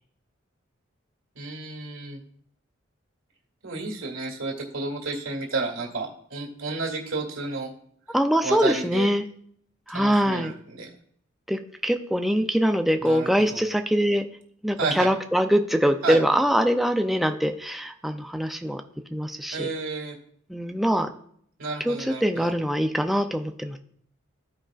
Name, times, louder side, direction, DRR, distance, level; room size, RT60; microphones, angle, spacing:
voice 1, 1.4-2.2 3.6-7.7 8.4-9.1 9.9-10.9 13.0-13.6 14.8-15.1 16.0-16.2 19.5-20.2 21.6-22.5, right 3 dB, 90° right, 0 dB, 2.0 m, -31 dB
voice 2, 8.1-9.3 9.9-10.5 11.5-14.2 14.6-18.8 19.1-19.7 20.5-21.1 21.8-23.8, equal, ahead, 5 dB, 0.4 m, -23 dB
15.0 x 5.0 x 2.4 m, 0.64 s
head